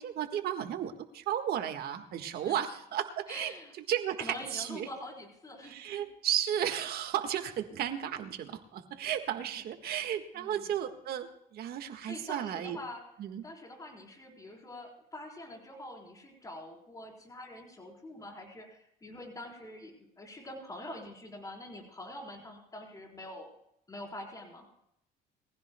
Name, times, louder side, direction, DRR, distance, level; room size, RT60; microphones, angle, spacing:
voice 1, 0.0-3.5 3.9-4.9 5.6-12.8 13.2-13.4, right 10 dB, 65° right, 7 dB, 1.7 m, -34 dB
voice 2, 3.3-3.7 4.2-5.8 10.3-10.7 12.0-13.0 13.4-23.5 23.9-24.7, left 1 dB, 20° left, 0 dB, 4.2 m, -45 dB
22.5 x 15.5 x 2.3 m, 0.75 s
cardioid pair, 110°, 17 cm